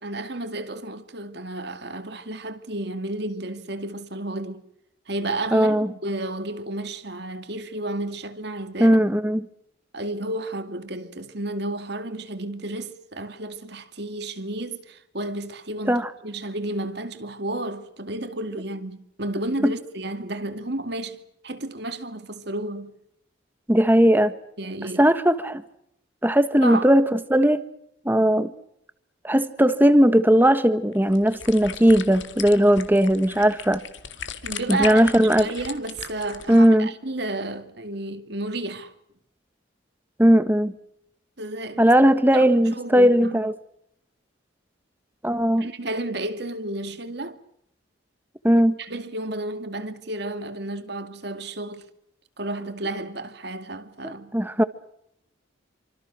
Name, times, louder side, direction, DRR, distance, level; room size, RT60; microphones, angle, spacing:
voice 1, 0.0-4.6 5.1-9.0 9.9-22.9 24.6-25.1 26.6-26.9 34.4-38.9 41.4-41.9 42.3-43.4 45.5-47.4 48.8-51.8 52.4-54.3, right 2 dB, 55° right, 2.3 m, -32 dB
voice 2, 5.5-5.9 8.8-9.4 15.9-16.1 19.6-19.7 23.7-24.3 25.0-25.6 26.2-27.6 28.0-28.5 29.2-33.8 34.7-35.5 36.5-36.9 40.2-40.7 41.8-43.5 45.2-45.7 48.4-48.7 54.0-54.6, equal, 10° right, 1.4 m, -18 dB
sound 1, 30.9-36.7, left 7 dB, 70° left, 2.1 m, -37 dB
28.0 x 25.5 x 6.3 m
head